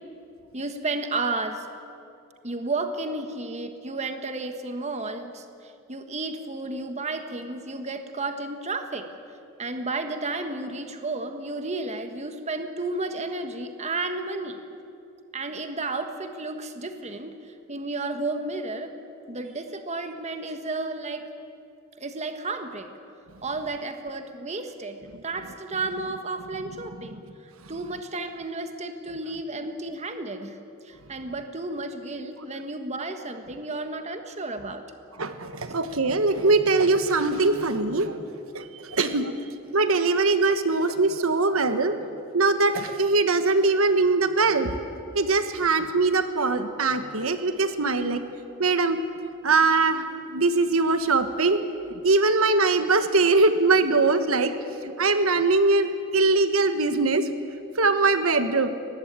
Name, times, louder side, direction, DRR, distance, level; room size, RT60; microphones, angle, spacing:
voice 1, 0.5-1.7 2.4-9.1 9.6-14.6 15.3-18.9 19.3-21.3 22.0-22.9 23.4-27.2 27.7-30.6 30.8-34.8, right 2 dB, 35° right, 7 dB, 1.5 m, -32 dB
voice 2, 35.2-38.3 38.5-39.3 39.7-42.0 42.3-44.8 45.1-48.2 48.6-49.0 49.4-51.6 51.9-54.5 54.8-57.3 57.7-58.7, right 3 dB, 90° right, 9 dB, 1.4 m, -22 dB
22.0 x 19.0 x 8.9 m, 2.6 s
head